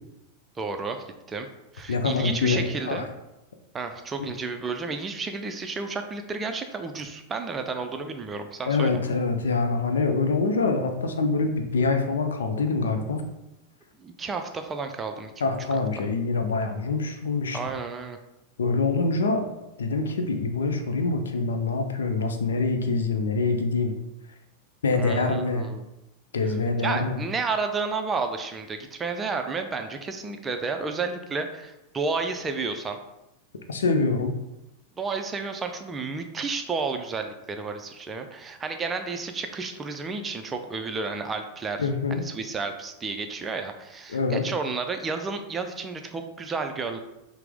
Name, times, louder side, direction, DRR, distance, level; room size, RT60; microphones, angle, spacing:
voice 1, 0.6-1.5 1.7-3.1 3.7-9.0 14.0-15.3 16.0-16.1 17.5-18.2 24.9-25.8 26.8-33.0 35.0-47.0, right 4 dB, 20° right, 6 dB, 0.4 m, -31 dB
voice 2, 1.9-3.1 8.7-13.2 15.4-17.6 18.6-19.5 19.8-23.9 24.8-25.7 26.3-27.2 33.7-34.3 41.8-42.2 44.1-44.4, left 3 dB, 65° left, 5 dB, 0.5 m, -25 dB
5.6 x 2.1 x 3.5 m, 0.91 s
figure-of-eight pair, 90°, 0 cm